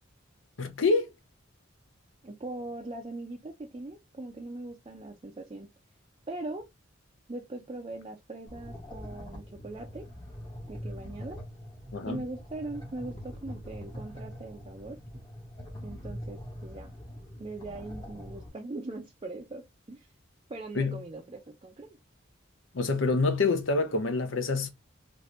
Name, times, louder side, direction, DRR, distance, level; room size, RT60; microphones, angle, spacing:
voice 1, 0.6-1.1 11.9-12.2 20.8-21.0 22.7-24.7, left 3 dB, 75° left, 0.7 m, -26 dB
voice 2, 2.2-5.7 6.3-6.7 7.3-10.1 10.7-11.4 12.1-15.2 15.8-16.9 17.4-20.1 20.5-22.0, right 2 dB, 25° right, 0.4 m, -41 dB
sound 1, 8.5-18.5, equal, 25° left, 1.0 m, -43 dB
2.8 x 2.5 x 3.1 m
head